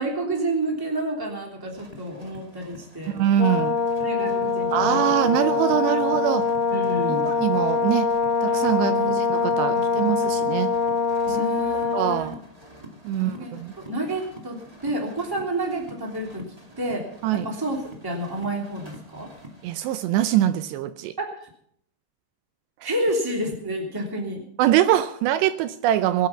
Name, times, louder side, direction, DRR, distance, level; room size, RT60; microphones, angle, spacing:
voice 1, 0.0-3.2 4.0-5.4 6.7-7.3 8.7-9.2 9.7-9.8 11.3-12.3 13.1-16.4 16.8-17.0 17.3-19.3 21.2-21.5 22.8-24.4, right 1 dB, 5° right, 0 dB, 2.2 m, -30 dB
sound 1, 1.7-19.7, equal, 20° right, 0.9 m, -46 dB
voice 2, 3.1-3.8 4.7-6.5 7.1-8.1 8.4-10.7 11.9-12.4 13.0-13.7 17.2-17.5 19.6-21.1 24.6-26.3, right 12 dB, 80° right, 12 dB, 2.8 m, -23 dB
Brass instrument, 3.4-12.3, left 5 dB, 80° left, 2.0 m, -24 dB
21.5 x 8.7 x 5.9 m, 0.68 s
omnidirectional pair, 5.0 m